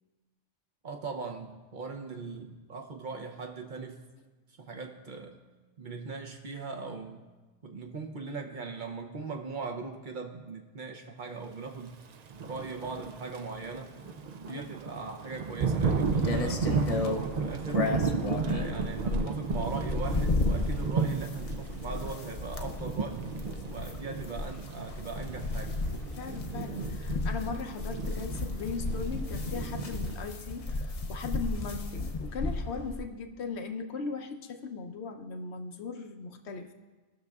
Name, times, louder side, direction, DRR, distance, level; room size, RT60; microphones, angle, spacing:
voice 1, 0.8-4.1 4.6-5.4 5.8-7.3 7.6-12.0 12.4-13.9 14.4-16.7 17.0-17.9 18.4-23.2 23.7-25.8, right 4 dB, 50° right, 3 dB, 0.7 m, -40 dB
Thunder / Rain, 12.3-30.4, right 5 dB, 65° right, 0.4 m, -34 dB
sound 1, 15.8-33.0, left 2 dB, 40° left, 0.5 m, -34 dB
voice 2, 26.2-36.7, left 4 dB, 65° left, 5 dB, 1.0 m, -38 dB
19.0 x 6.4 x 2.4 m, 1.3 s
omnidirectional pair, 1.2 m